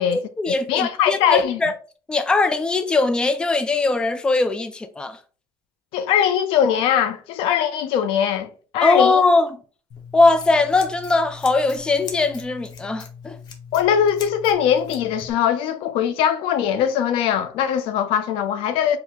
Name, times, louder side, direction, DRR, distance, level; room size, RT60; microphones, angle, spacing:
voice 1, 0.0-1.7 2.1-5.2 8.8-9.5 10.1-13.4, left 3 dB, 10° left, 0.4 m, -20 dB
voice 2, 0.7-1.6 5.9-9.2 13.7-19.0, left 9 dB, 75° left, 0.5 m, -21 dB
Scissors, 9.9-15.3, left 6 dB, 50° left, 0.8 m, -40 dB
4.5 x 2.1 x 3.6 m
cardioid pair, 140°, 9 cm